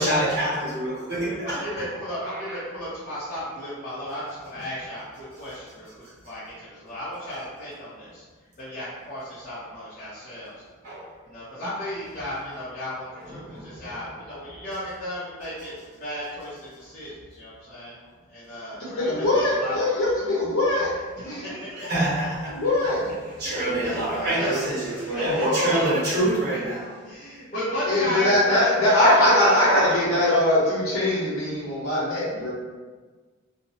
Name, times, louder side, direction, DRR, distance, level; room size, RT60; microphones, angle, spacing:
voice 1, 0.0-1.6 2.2-2.6 10.8-11.1 13.2-13.9 21.8-22.6 23.4-26.9, right 1 dB, 50° right, -9 dB, 1.1 m, -26 dB
voice 2, 1.4-8.2 8.6-10.6 11.3-18.0 18.3-20.3 21.2-21.9 23.4-25.5 26.0-26.1 27.0-30.4, equal, 35° left, -12 dB, 0.6 m, -34 dB
voice 3, 18.9-20.9 21.2-21.3 22.5-23.0 24.3-24.4 25.1-25.8 27.9-32.5, left 1 dB, 80° left, -7 dB, 0.9 m, -21 dB
2.8 x 2.1 x 2.7 m, 1.4 s
head